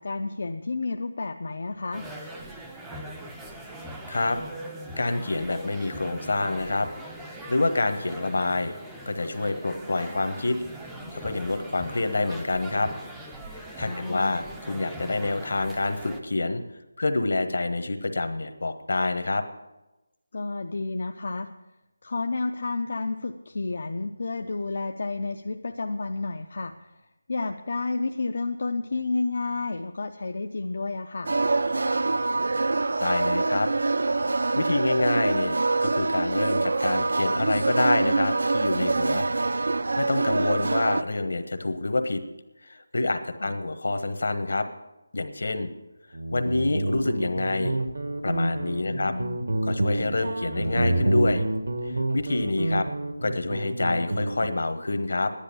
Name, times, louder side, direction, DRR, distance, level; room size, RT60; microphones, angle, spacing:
voice 1, 0.0-2.1 13.8-14.4 20.3-21.5 22.0-26.9 27.3-31.3 43.4-43.5 48.8-49.4, left 3 dB, 45° left, 5 dB, 0.5 m, -31 dB
sound 1, 1.9-16.2, right 1 dB, 5° right, 0.5 m, -41 dB
voice 2, 4.1-4.4 5.0-6.9 7.2-8.7 9.1-12.9 13.5-16.6 17.0-19.4 33.0-33.7 34.6-39.2 40.0-42.2 42.6-44.7 45.1-45.7 46.3-47.8 48.2-49.1 49.6-51.4 51.8-52.9 53.2-55.3, left 2 dB, 60° left, 8 dB, 1.2 m, -27 dB
sound 2, 31.2-41.0, right 3 dB, 55° right, 0.4 m, -25 dB
Guitar, 46.1-54.6, right 1 dB, 75° right, 1.4 m, -28 dB
11.0 x 10.5 x 7.0 m, 1.0 s
figure-of-eight pair, 180°, 0 cm